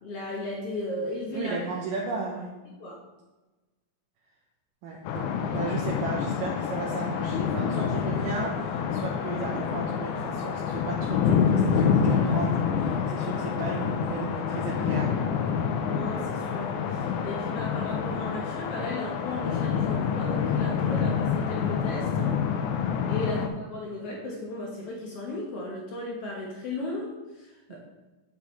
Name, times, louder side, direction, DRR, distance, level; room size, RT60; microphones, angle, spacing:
voice 1, 0.0-1.5 2.8-3.0 15.9-22.3 23.1-27.1 27.4-27.8, left 2 dB, 65° left, -2 dB, 1.5 m, -35 dB
voice 2, 1.3-2.5 4.8-15.2 23.2-23.5 27.7-27.8, right 4 dB, 75° right, -2 dB, 2.4 m, -35 dB
sound 1, 5.0-23.5, left 7 dB, 90° left, 1.8 m, -27 dB
8.2 x 7.1 x 3.2 m, 1.2 s
omnidirectional pair, 4.1 m